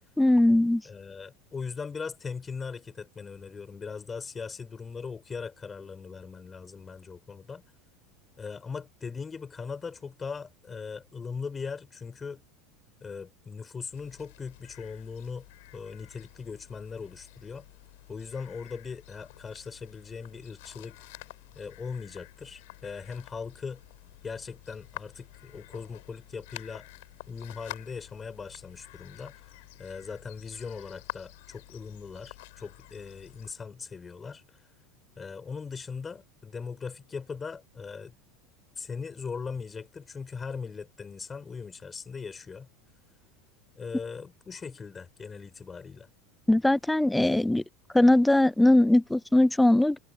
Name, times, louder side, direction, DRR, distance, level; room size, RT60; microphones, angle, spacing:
voice 1, 0.2-0.8 46.5-47.6 47.9-50.0, left 1 dB, 5° left, 0.3 m, -20 dB
voice 2, 0.8-7.6 8.4-12.4 13.0-15.5 15.7-17.7 18.1-21.3 21.6-23.8 24.2-26.9 27.3-34.7 35.2-38.1 38.8-42.7 43.8-46.1, left 5 dB, 25° left, 7.0 m, -39 dB
sound 1, 13.9-33.5, left 22 dB, 70° left, 5.5 m, -49 dB
hypercardioid pair, 85°, 0 cm